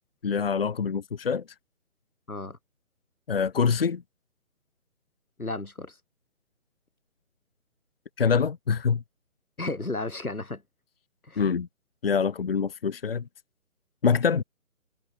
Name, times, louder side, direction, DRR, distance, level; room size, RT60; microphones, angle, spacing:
voice 1, 0.2-1.4 3.3-4.0 8.2-9.0 11.4-11.7 12.0-13.2 14.0-14.4, left 6 dB, 40° left, 1.5 m, -25 dB
voice 2, 2.3-2.6 5.4-6.0 9.6-10.6 11.3-11.5, left 2 dB, 85° left, 3.5 m, -33 dB
figure-of-eight pair, 150°, 42 cm